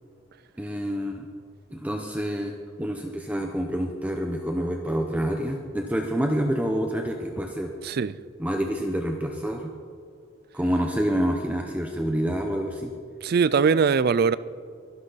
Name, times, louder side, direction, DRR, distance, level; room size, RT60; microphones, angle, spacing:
voice 1, 0.6-1.3 1.7-7.7 8.4-9.7 10.5-12.9, equal, 10° right, 0.8 m, -27 dB
voice 2, 7.8-8.2 13.2-14.4, right 5 dB, 50° right, 0.4 m, -21 dB
23.0 x 11.5 x 4.1 m
head